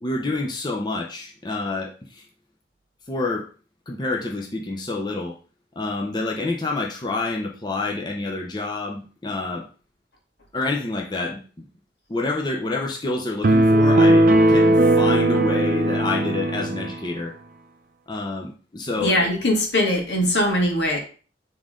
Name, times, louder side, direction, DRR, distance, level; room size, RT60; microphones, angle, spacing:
voice 1, 0.0-2.2 3.1-3.5 3.9-5.4 5.8-9.7 10.5-11.7 12.1-17.4 18.1-19.1, left 3 dB, 25° left, 0 dB, 0.6 m, -28 dB
sound 1, 13.4-17.0, right 1 dB, 50° right, 0.5 m, -17 dB
voice 2, 19.0-21.0, left 1 dB, 80° left, 1 dB, 1.9 m, -21 dB
7.1 x 3.7 x 3.7 m, 0.38 s
head